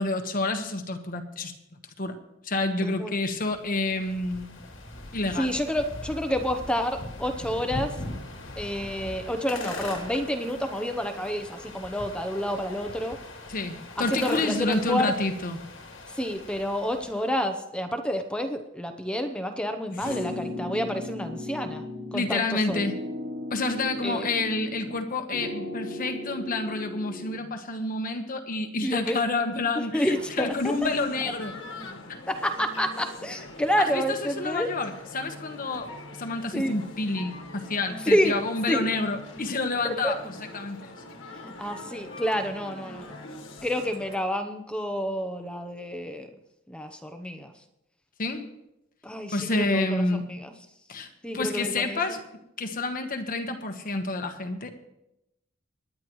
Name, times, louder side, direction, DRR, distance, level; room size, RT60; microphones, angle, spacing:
voice 1, 0.0-1.5 2.0-2.2 2.4-4.5 5.1-5.5 13.5-15.6 20.0-20.2 22.1-23.0 23.5-31.5 33.8-35.9 36.2-41.0 48.2-48.5 49.3-50.3 50.9-52.2 52.6-54.7, left 2 dB, 45° left, 6 dB, 1.3 m, -29 dB
voice 2, 2.8-3.1 5.4-7.9 8.6-13.2 14.1-15.1 16.2-21.8 22.1-22.8 24.0-24.3 28.8-29.2 29.8-30.5 32.3-34.7 36.5-36.7 38.0-38.3 38.7-38.9 39.8-40.1 41.6-43.2 43.6-46.3 46.7-47.5 49.0-50.0 50.3-50.5 51.2-52.0, equal, 5° left, 6 dB, 0.8 m, -29 dB
sound 1, 3.3-17.4, left 2 dB, 65° left, 2.7 m, -40 dB
sound 2, 20.0-22.4 22.7-25.0 25.3-27.4, left 1 dB, 70° right, 3.0 m, -36 dB
Male speech man speaking, 30.1-44.2, left 2 dB, 85° left, 1.4 m, -43 dB
24.5 x 10.5 x 3.1 m, 0.87 s
head